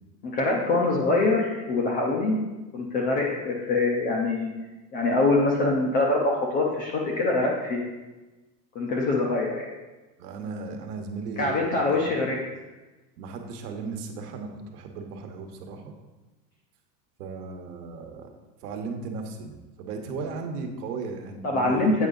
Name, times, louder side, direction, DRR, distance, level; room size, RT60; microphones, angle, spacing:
voice 1, 0.2-2.4 2.7-4.5 4.9-7.8 8.8-9.7 11.4-12.4 21.4-22.1, left 2 dB, 20° left, -2 dB, 0.4 m, -24 dB
voice 2, 10.2-12.2 13.2-15.9 17.2-18.3 18.6-22.1, right 4 dB, 65° right, 4 dB, 1.2 m, -36 dB
8.1 x 4.8 x 3.8 m, 1.2 s
supercardioid pair, 150°, 49 cm